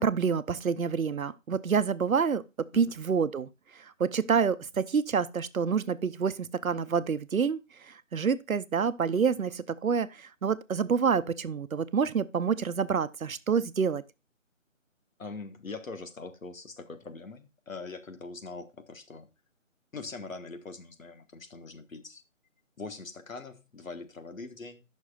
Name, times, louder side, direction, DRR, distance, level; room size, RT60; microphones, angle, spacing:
voice 1, 0.0-2.4 2.7-3.5 4.0-7.6 8.1-14.0, right 6 dB, 90° right, 0.8 m, -27 dB
voice 2, 15.2-19.3 19.9-22.2 22.8-24.8, left 3 dB, 75° left, 1.6 m, -42 dB
16.0 x 6.3 x 2.4 m
figure-of-eight pair, 170°, 40 cm